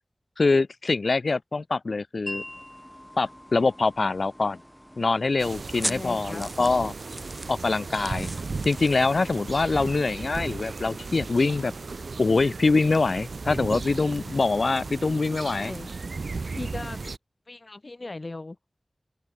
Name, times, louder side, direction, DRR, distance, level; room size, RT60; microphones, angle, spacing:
voice 1, 0.4-2.4 3.2-4.6 5.0-6.9 7.5-8.3 8.7-11.7 12.2-15.7, left 3 dB, 75° left, 0.3 m, -24 dB
Wind chime, 2.3-8.3, left 1 dB, 20° left, 2.0 m, -46 dB
sound 1, 2.3-10.5, equal, 5° right, 0.4 m, -41 dB
sound 2, 5.4-17.2, right 4 dB, 85° right, 1.1 m, -36 dB
voice 2, 5.8-6.4 15.5-15.9 16.5-17.0 17.5-18.6, left 2 dB, 50° left, 1.1 m, -38 dB
wide cardioid pair, 65°, 0 cm